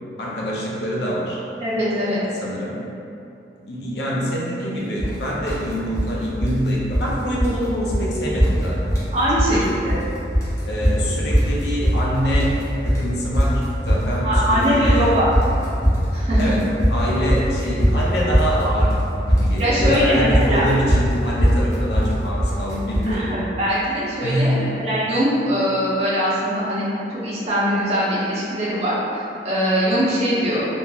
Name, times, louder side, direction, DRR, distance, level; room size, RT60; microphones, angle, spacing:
voice 1, 0.2-1.4 1.9-2.8 3.7-9.0 9.3-9.7 10.6-15.1 16.4-16.6 16.9-23.3 24.2-24.6, equal, 70° left, -4 dB, 0.5 m, -25 dB
voice 2, 1.6-2.2 9.1-10.0 14.2-15.3 16.1-16.6 19.6-20.6 23.1-30.7, equal, 35° right, -10 dB, 0.6 m, -22 dB
sound 1, 5.0-5.2 5.5-6.1 6.4-7.1 7.4-7.6 7.9-8.1 8.4-9.1 9.4-10.0 10.3-23.1, equal, 15° left, 0.5 m, -20 dB
2.9 x 2.3 x 2.3 m, 2.7 s
head